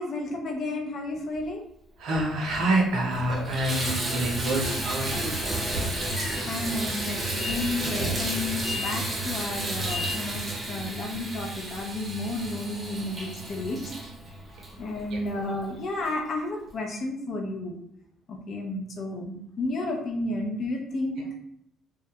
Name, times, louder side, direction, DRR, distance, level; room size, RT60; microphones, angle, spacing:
voice 1, 0.0-1.6 6.5-13.8 14.8-17.8 18.3-21.2, left 2 dB, 50° left, 1 dB, 0.5 m, -32 dB
voice 2, 2.0-5.8 8.0-8.2 14.5-14.6 15.1-15.2 21.2-21.3, right 1 dB, 65° right, 1 dB, 0.6 m, -28 dB
Water tap faucet / Bathtub (filling or washing), 2.4-2.5 3.0-15.4 16.1-16.2 16.7-16.8, right 1 dB, 25° right, 0.8 m, -32 dB
Train / Sliding door, 4.1-10.5, left 2 dB, 5° left, 1.0 m, -38 dB
2.2 x 2.1 x 2.8 m, 0.73 s
cardioid pair, 125°, 0 cm